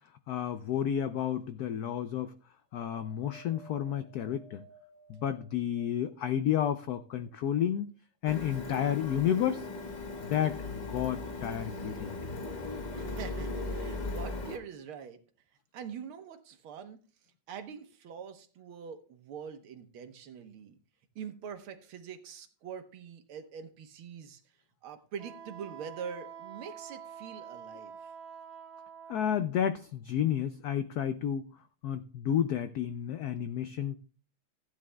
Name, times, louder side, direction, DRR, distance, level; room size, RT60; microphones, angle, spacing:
voice 1, 0.3-2.3 2.7-4.6 5.1-7.9 8.2-9.7 10.3-12.2 29.1-31.4 31.8-34.0, left 9 dB, 85° left, 0.8 m, -31 dB
Wind, 2.7-6.3 6.8-7.9 8.6-8.7, right 2 dB, 55° left, 7.5 m, -58 dB
Printer, 8.2-14.6, left 3 dB, 30° left, 1.0 m, -38 dB
voice 2, 12.9-15.2 15.7-17.0 17.5-20.8 21.2-24.4 24.8-28.1, right 7 dB, 90° right, 1.9 m, -44 dB
Wind instrument woodwind instrument, 25.2-29.3, right 8 dB, 55° right, 1.7 m, -47 dB
15.5 x 9.6 x 2.2 m
omnidirectional pair, 2.2 m